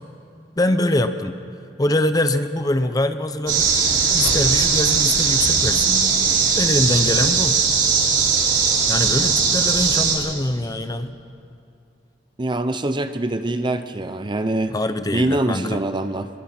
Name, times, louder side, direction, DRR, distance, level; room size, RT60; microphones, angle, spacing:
voice 1, 0.6-1.4 1.8-3.7 4.1-6.0 6.6-7.6 8.9-11.1 14.7-15.8, left 1 dB, 20° left, 10 dB, 0.7 m, -23 dB
sound 1, 3.5-10.2, right 5 dB, 90° right, 4.5 m, -19 dB
voice 2, 12.4-14.7 15.1-16.3, right 1 dB, 25° right, 10 dB, 0.7 m, -24 dB
26.0 x 22.5 x 4.4 m, 2.6 s
head